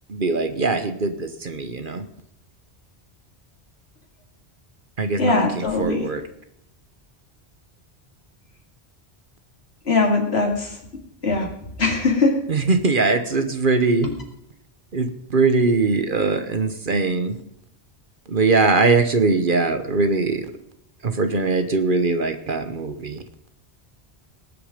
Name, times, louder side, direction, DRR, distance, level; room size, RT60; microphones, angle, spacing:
voice 1, 0.1-2.0 5.0-6.2 12.5-14.1 14.9-17.4 18.3-20.5 21.0-23.2, right 3 dB, 50° right, 9 dB, 1.2 m, -21 dB
voice 2, 5.2-6.1 9.8-10.8 11.2-11.5 11.8-12.4 14.0-14.1, left 3 dB, 70° left, 2 dB, 2.7 m, -21 dB
18.5 x 8.6 x 5.1 m, 0.78 s
omnidirectional pair, 1.1 m